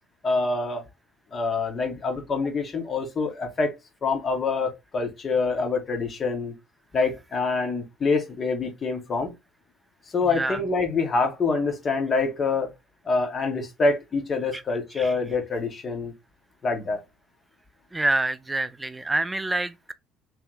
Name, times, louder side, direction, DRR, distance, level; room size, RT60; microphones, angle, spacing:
voice 1, 0.2-0.8 1.3-3.7 4.0-6.5 6.9-9.3 10.1-12.7 13.0-16.1 16.6-17.0, left 4 dB, 35° left, 1.4 m, -26 dB
voice 2, 17.9-19.9, right 2 dB, 15° right, 0.4 m, -26 dB
3.2 x 2.8 x 4.0 m
figure-of-eight pair, 55°, 0 cm